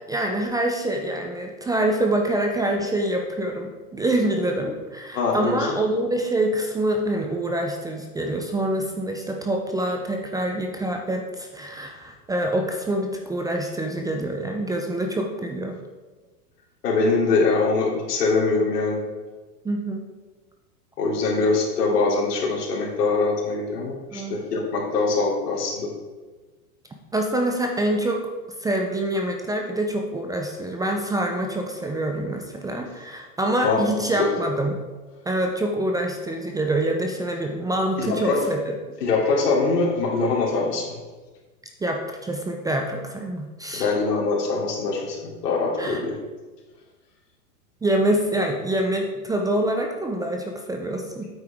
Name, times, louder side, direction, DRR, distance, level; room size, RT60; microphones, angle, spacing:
voice 1, 0.0-15.8 19.6-20.0 24.1-24.4 27.1-28.2 28.6-34.8 35.3-38.6 41.8-43.9 45.8-46.0 47.8-51.3, right 1 dB, 10° right, 3 dB, 0.5 m, -26 dB
voice 2, 5.1-5.7 16.8-19.0 21.0-25.9 33.6-34.3 38.0-38.4 39.0-41.0 43.7-46.1, left 3 dB, 80° left, -2 dB, 3.1 m, -23 dB
9.2 x 8.0 x 3.6 m, 1.3 s
hypercardioid pair, 120°, 47 cm